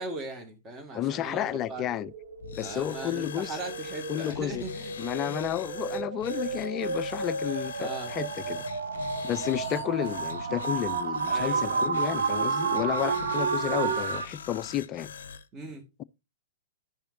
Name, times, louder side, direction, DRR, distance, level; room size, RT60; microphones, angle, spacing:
voice 1, 0.0-1.8 2.6-4.9 5.2-5.4 7.8-8.1 11.3-11.8 15.5-15.8, right 2 dB, 20° right, 2.0 m, -39 dB
voice 2, 0.9-2.1 2.5-3.6 4.1-4.6 5.0-8.6 9.2-15.1, left 11 dB, 25° left, 0.3 m, -31 dB
sound 1, 1.0-14.2, right 5 dB, 70° right, 1.1 m, -32 dB
sound 2, 2.4-15.5, left 7 dB, 60° left, 0.7 m, -43 dB
12.0 x 5.6 x 2.7 m
figure-of-eight pair, 110°, 0 cm